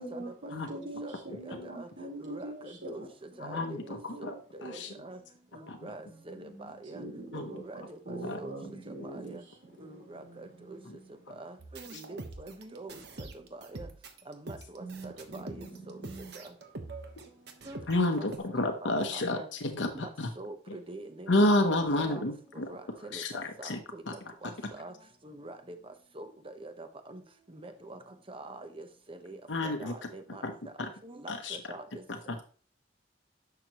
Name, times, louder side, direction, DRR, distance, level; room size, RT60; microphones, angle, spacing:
voice 1, 0.0-3.1 3.5-4.4 6.3-9.4 10.2-10.4 10.7-11.1 14.8-15.7 15.9-16.3, right 2 dB, 85° right, 3.9 m, -43 dB
voice 2, 0.7-1.9 2.2-3.1 3.4-5.2 5.5-7.0 7.3-8.5 9.0-9.4 9.8-10.8 11.4-13.3 13.7-13.9 14.3-16.0 16.4-16.5 17.7-17.8 18.2-18.3 19.1-19.5 19.9-20.1 20.4-22.2 22.7-23.2 23.6-24.0 24.4-24.9 25.2-25.8 26.1-27.2 27.5-28.0 28.3-30.4 30.8-31.8, right 2 dB, 30° right, 1.0 m, -45 dB
voice 3, 3.4-4.3 4.6-4.9 5.7-5.9 7.3-7.5 8.2-8.4 10.8-11.0 11.9-12.0 17.2-17.3 17.9-20.3 20.7-20.8 21.3-22.7 23.1-23.8 24.1-24.2 24.4-24.5 29.5-29.9 30.4-30.5 30.8-30.9 31.3-31.6 32.1-32.4, left 1 dB, 85° left, 1.0 m, -30 dB
sound 1, 11.6-18.4, right 2 dB, 65° right, 1.2 m, -44 dB
10.5 x 6.9 x 3.0 m
head